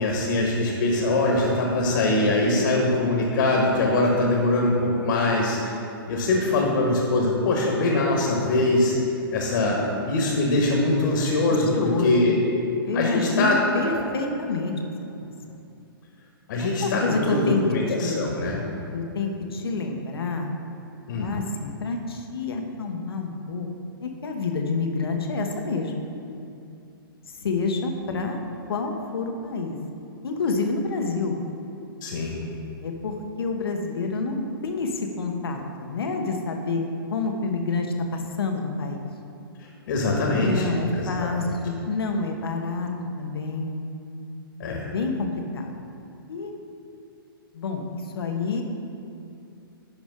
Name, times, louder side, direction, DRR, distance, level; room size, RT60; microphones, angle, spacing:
voice 1, 0.0-5.7 6.1-8.9 9.3-9.8 10.1-12.3 12.9-13.6 13.8-14.0 16.5-18.6 21.1-21.3 32.0-32.4 39.9-40.6 40.9-41.3 44.6-44.8, left 2 dB, 60° left, -1 dB, 1.4 m, -22 dB
voice 2, 11.7-12.2 12.8-14.7 15.5-15.6 16.6-17.6 18.0-18.3 18.9-20.5 21.2-23.7 24.0-26.1 27.4-28.4 28.7-29.8 30.2-31.4 32.8-37.9 38.1-39.0 40.4-42.9 43.2-43.8 44.6-45.8 46.3-46.5 47.5-48.6, left 3 dB, 85° left, 3 dB, 1.0 m, -28 dB
10.5 x 5.1 x 3.7 m, 2.6 s
hypercardioid pair, 140°, 12 cm